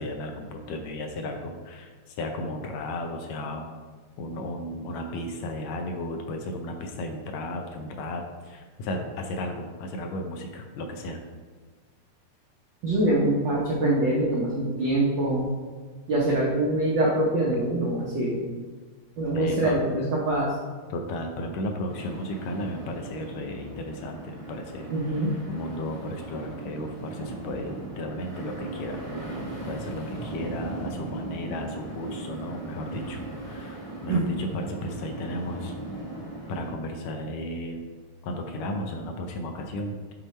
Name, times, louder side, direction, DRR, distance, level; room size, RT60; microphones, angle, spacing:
voice 1, 0.0-3.7 4.2-11.2 19.3-19.8 20.9-24.9 25.5-29.0 29.7-35.7 36.5-37.9 38.2-40.0, left 1 dB, 75° left, 3 dB, 1.8 m, -34 dB
voice 2, 12.8-15.5 16.1-18.4 19.2-20.6 24.9-25.3 34.1-34.2, right 1 dB, 75° right, -4 dB, 1.0 m, -24 dB
sound 1, 21.9-36.7, right 2 dB, 40° left, 0.4 m, -38 dB
7.0 x 4.3 x 4.2 m, 1.5 s
omnidirectional pair, 3.4 m